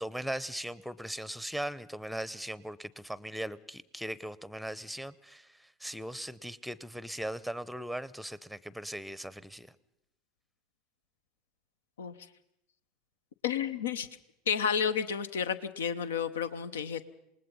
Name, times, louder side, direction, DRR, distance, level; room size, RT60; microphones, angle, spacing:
voice 1, 0.0-9.7, right 1 dB, ahead, 20 dB, 0.8 m, -39 dB
voice 2, 13.4-14.1 14.5-17.1, left 7 dB, 70° left, 14 dB, 0.9 m, -31 dB
27.5 x 19.5 x 5.6 m, 0.81 s
figure-of-eight pair, 80°, 0 cm